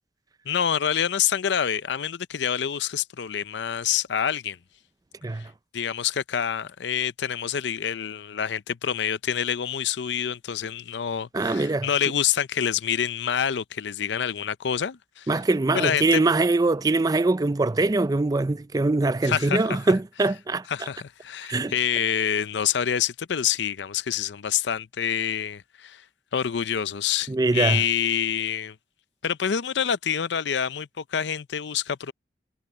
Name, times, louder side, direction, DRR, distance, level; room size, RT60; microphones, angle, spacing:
voice 1, 0.5-4.6 5.7-15.3 15.7-16.2 19.2-19.6 20.7-26.0 26.3-28.8 29.2-32.1, left 8 dB, 70° left, 0.5 m, -27 dB
voice 2, 11.3-11.9 15.3-20.7 21.5-21.7 27.3-27.8, right 2 dB, 20° right, 0.4 m, -23 dB
head